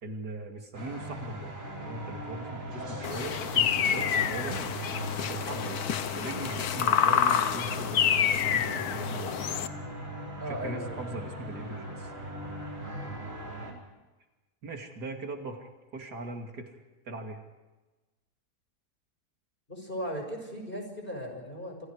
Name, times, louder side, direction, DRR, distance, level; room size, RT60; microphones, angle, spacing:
voice 1, 0.0-1.5 1.8-4.7 5.2-5.8 6.1-9.4 10.4-12.1 14.6-16.8 17.0-17.4, right 2 dB, 75° right, 3 dB, 3.1 m, -40 dB
sound 1, 0.7-13.7, equal, 50° right, 5.0 m, -39 dB
sound 2, 3.0-9.7, left 8 dB, 70° left, 1.5 m, -28 dB
voice 2, 10.4-11.0 13.0-13.2 19.7-21.9, equal, 30° left, 3 dB, 6.0 m, -37 dB
29.5 x 27.0 x 4.8 m, 1.2 s
omnidirectional pair, 1.7 m